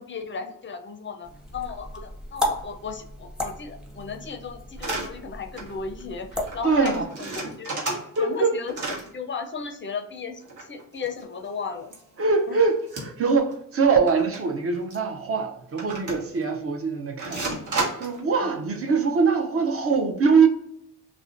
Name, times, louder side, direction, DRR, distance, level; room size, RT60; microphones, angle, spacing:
voice 1, 0.0-7.8 8.2-11.9 12.5-12.7 18.4-18.7, left 5 dB, 35° left, 0.4 m, -35 dB
sound 1, 1.2-7.1, left 1 dB, 5° right, 0.6 m, -34 dB
sound 2, 4.8-5.1 5.6-5.8 6.0-6.1 6.3-6.6 6.8-8.4 8.7-9.1 10.4-11.5 11.9-12.0 12.9-13.3 13.5-13.6 14.1-14.4 14.9-15.0 15.8-16.4 17.2-18.2, right 3 dB, 65° right, 1.0 m, -31 dB
voice 2, 6.6-7.1 8.2-8.5 12.2-17.4 18.0-20.5, right 5 dB, 45° right, 0.5 m, -22 dB
2.5 x 2.1 x 2.5 m
cardioid pair, 65°, 33 cm